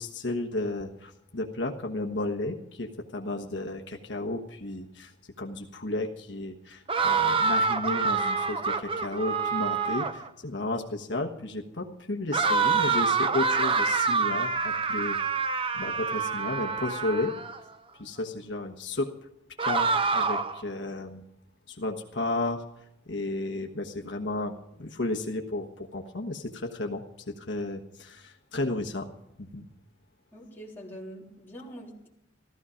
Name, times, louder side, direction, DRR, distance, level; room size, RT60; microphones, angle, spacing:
voice 1, 0.0-5.1 5.4-15.2 15.7-17.3 17.9-19.1 19.6-21.2 21.7-22.6 23.1-29.1 29.4-29.6, left 2 dB, 65° left, 3 dB, 1.3 m, -33 dB
sound 1, 6.9-10.3 12.3-17.6 19.6-20.6, right 4 dB, 25° right, 0.8 m, -26 dB
voice 2, 30.3-32.1, equal, 10° left, -4 dB, 3.4 m, -44 dB
15.5 x 13.5 x 5.1 m, 0.77 s
head